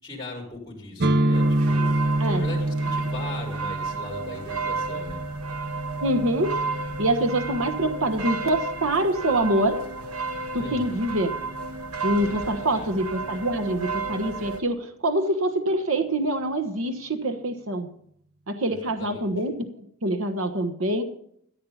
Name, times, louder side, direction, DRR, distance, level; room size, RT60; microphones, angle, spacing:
voice 1, 0.0-1.9 2.3-5.2 10.5-11.0 12.7-12.9 18.7-19.3, left 1 dB, 15° left, -3 dB, 4.6 m, -38 dB
sound 1, 1.0-8.8, right 1 dB, 45° right, 0.7 m, -27 dB
sound 2, 1.3-14.6, right 4 dB, 85° right, 1.5 m, -33 dB
voice 2, 6.0-6.6 7.0-9.8 10.5-11.3 12.0-17.9 18.5-21.0, right 1 dB, 65° right, 7 dB, 1.3 m, -25 dB
14.5 x 8.6 x 7.2 m, 0.67 s
head